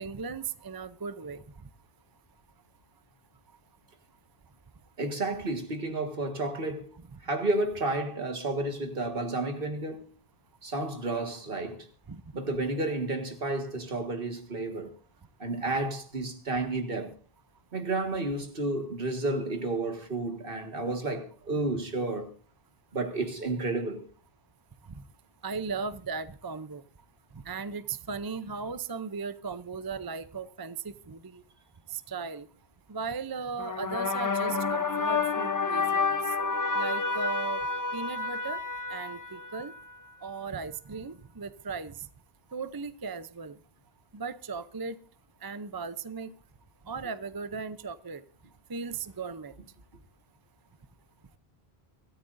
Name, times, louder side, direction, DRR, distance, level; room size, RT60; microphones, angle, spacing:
voice 1, 0.0-1.4 12.1-12.2 25.4-26.8 27.5-31.4 31.9-32.5 32.9-36.2 36.7-37.6 37.9-38.6 38.9-39.7 40.2-42.0 42.5-43.6 44.1-45.0 45.4-46.3 46.9-48.2 48.7-49.5, right 5 dB, 30° right, 0.5 m, -37 dB
voice 2, 5.0-6.9 7.2-10.1 10.6-11.9 12.3-14.9 15.4-17.1 17.7-22.3 22.9-24.1, right 2 dB, 60° right, 2.0 m, -31 dB
sound 1, 33.6-40.0, left 4 dB, 20° left, 0.6 m, -30 dB
24.0 x 13.5 x 2.6 m
omnidirectional pair, 1.1 m